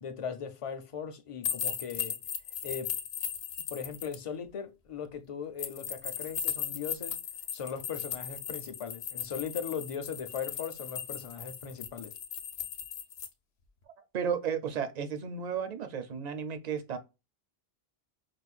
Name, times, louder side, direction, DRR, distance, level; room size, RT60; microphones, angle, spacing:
voice 1, 0.0-2.2 2.6-2.9 3.7-7.2 7.5-12.1, left 7 dB, 45° left, 0.5 m, -38 dB
sound 1, 1.4-4.2 5.6-13.3, left 9 dB, 85° left, 0.9 m, -37 dB
voice 2, 14.1-17.0, right 7 dB, 50° right, 0.6 m, -33 dB
4.9 x 2.2 x 2.4 m
omnidirectional pair, 1.0 m